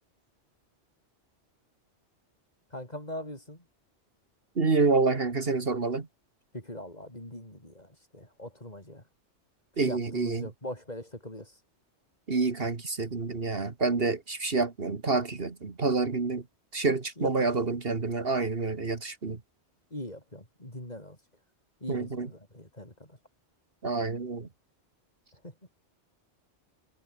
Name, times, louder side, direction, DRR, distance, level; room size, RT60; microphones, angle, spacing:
voice 1, 2.7-3.6 6.5-9.0 9.8-11.5 17.2-17.5 19.9-21.2 21.8-22.9 25.4-25.5, left 1 dB, 35° left, 6.8 m, -41 dB
voice 2, 4.6-6.0 9.8-10.5 12.3-16.4 16.7-19.4 21.9-22.3 23.8-24.4, right 3 dB, 55° right, 2.1 m, -28 dB
omnidirectional pair, 1.2 m